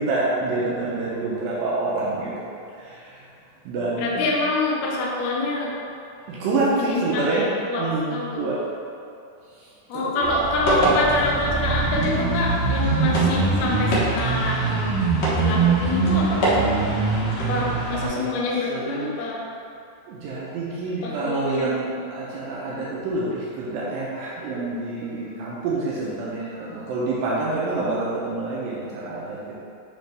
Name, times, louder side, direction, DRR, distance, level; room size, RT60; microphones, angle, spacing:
voice 1, 0.0-2.5 2.9-3.0 3.7-4.3 6.3-7.5 7.8-8.6 9.9-10.2 10.7-10.9 17.5-17.7 17.9-19.1 20.1-29.4, right 3 dB, 80° right, -6 dB, 2.4 m, -27 dB
voice 2, 4.0-5.7 6.8-8.5 9.9-16.5 17.4-19.4 21.0-21.7, left 2 dB, 80° left, -3 dB, 1.6 m, -26 dB
sound 1, 10.2-18.1, right 3 dB, 60° left, 2.0 m, -22 dB
9.2 x 3.5 x 3.3 m, 2.5 s
omnidirectional pair, 4.3 m